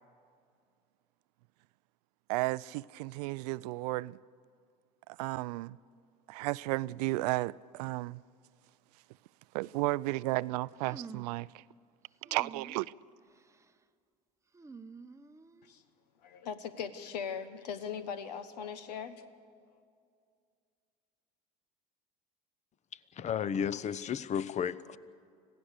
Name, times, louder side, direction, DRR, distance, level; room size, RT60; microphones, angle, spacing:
voice 1, 2.3-4.2 5.1-5.8 6.3-8.2 9.5-11.6 12.3-12.9, right 20 dB, 75° right, 0.4 m, -33 dB
sound 1, 10.8-11.4 12.2-12.9 13.3-13.7 14.5-15.7, right 4 dB, 15° right, 0.8 m, -49 dB
voice 2, 16.2-19.2, left 7 dB, 85° left, 1.2 m, -39 dB
voice 3, 22.9-25.0, left 8 dB, 35° left, 0.8 m, -33 dB
26.0 x 16.0 x 6.7 m
hypercardioid pair, 80°, 21 cm